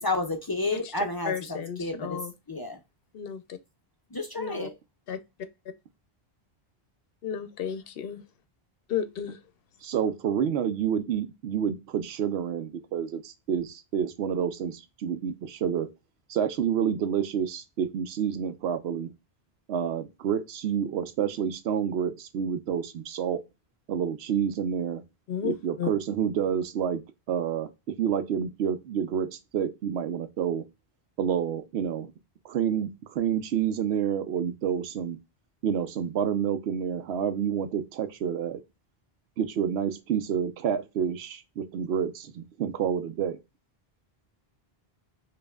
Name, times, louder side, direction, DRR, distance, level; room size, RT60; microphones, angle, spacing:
voice 1, 0.0-2.2 2.5-2.8 4.1-4.7, left 2 dB, 30° left, 0.4 m, -30 dB
voice 2, 0.7-2.3 3.1-3.6 4.4-4.7 5.1-5.2 7.2-8.2 8.9-9.4 25.3-25.9, left 8 dB, 70° left, 0.7 m, -33 dB
voice 3, 9.8-15.9 16.3-19.1 19.7-23.4 23.9-25.0 25.4-27.0 27.3-30.6 31.2-32.1 32.4-35.2 35.6-38.6 39.4-43.4, right 8 dB, 85° right, 0.8 m, -29 dB
5.2 x 2.5 x 2.2 m
omnidirectional pair, 1.0 m